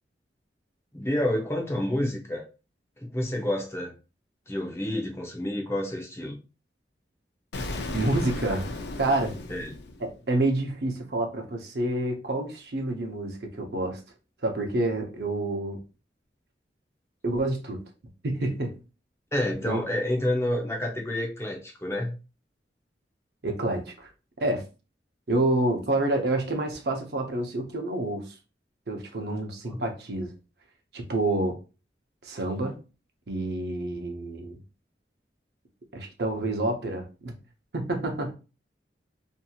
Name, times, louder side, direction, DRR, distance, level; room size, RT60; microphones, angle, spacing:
voice 1, 0.9-2.5 3.0-4.0 4.5-6.4 9.5-9.7 19.3-22.1 29.6-29.8, left 1 dB, 15° left, 0.6 m, -29 dB
Explosion, 7.5-10.4, left 2 dB, 70° left, 0.5 m, -35 dB
voice 2, 7.9-8.6 9.0-9.3 10.0-14.0 14.4-15.8 17.2-17.8 18.2-18.8 19.6-19.8 23.4-24.1 24.4-24.6 25.3-28.4 28.9-30.3 30.9-31.6 32.2-32.8 33.3-34.6 35.9-37.4 37.7-38.3, right 2 dB, 65° right, 0.7 m, -28 dB
2.8 x 2.7 x 2.3 m
head